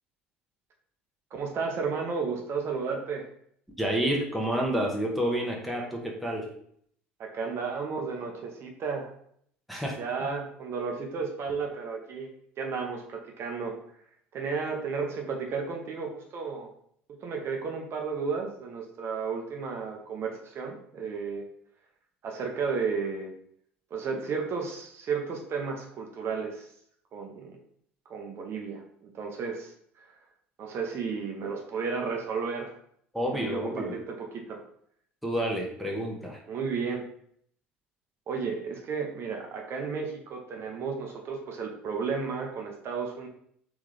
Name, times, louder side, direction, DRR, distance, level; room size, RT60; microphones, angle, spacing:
voice 1, 1.3-3.3 7.2-9.1 10.0-12.3 12.6-13.8 14.3-16.7 17.2-21.4 22.2-23.3 23.9-26.7 27.1-27.6 28.1-30.1 30.6-32.7 33.2-34.6 36.5-37.0 38.3-43.3, right 5 dB, 40° right, 2 dB, 0.7 m, -33 dB
voice 2, 3.8-6.4 9.7-10.0 33.1-33.9 35.2-36.4, equal, ahead, -1 dB, 1.0 m, -29 dB
3.6 x 3.5 x 3.2 m, 0.65 s
figure-of-eight pair, 60°, 6 cm